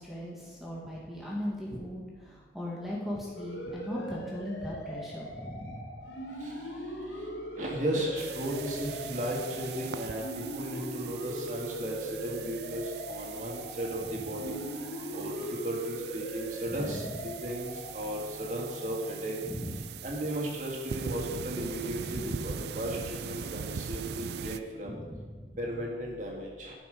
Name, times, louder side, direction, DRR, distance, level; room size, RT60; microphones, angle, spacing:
voice 1, 0.0-5.9 14.0-14.1 16.7-17.1 19.4-20.1 22.0-22.5 24.8-25.6, equal, ahead, -5 dB, 2.1 m, -38 dB
sound 1, 3.4-19.8, equal, 70° left, 1.5 m, -41 dB
voice 2, 7.6-14.6 15.1-15.3 15.6-19.4 20.0-25.0 25.6-26.7, equal, 45° right, -2 dB, 2.0 m, -35 dB
sound 2, 8.2-24.6, right 6 dB, 65° right, 0.4 m, -41 dB
11.0 x 6.0 x 5.2 m, 1.4 s
head